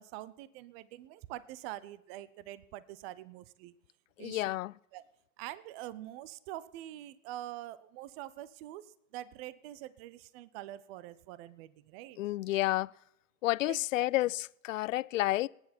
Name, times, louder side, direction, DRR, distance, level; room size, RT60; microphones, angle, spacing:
voice 1, 0.0-3.7 4.2-4.6 4.9-5.0 5.4-12.2 12.5-12.6 13.7-13.8, right 14 dB, 45° right, 0.8 m, -45 dB
voice 2, 4.2-4.7 12.2-12.9 13.4-15.5, left 17 dB, 70° left, 0.5 m, -30 dB
26.5 x 9.8 x 4.3 m
hypercardioid pair, 105°, 42 cm